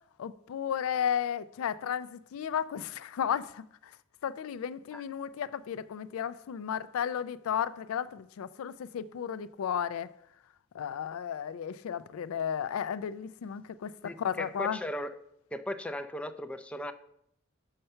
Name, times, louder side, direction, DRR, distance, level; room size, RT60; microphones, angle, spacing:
voice 1, 0.2-3.6 4.2-10.1 10.7-14.8, left 8 dB, 90° left, 0.4 m, -33 dB
voice 2, 14.0-15.2 15.5-16.9, left 1 dB, 5° left, 0.3 m, -37 dB
6.6 x 5.7 x 5.4 m
head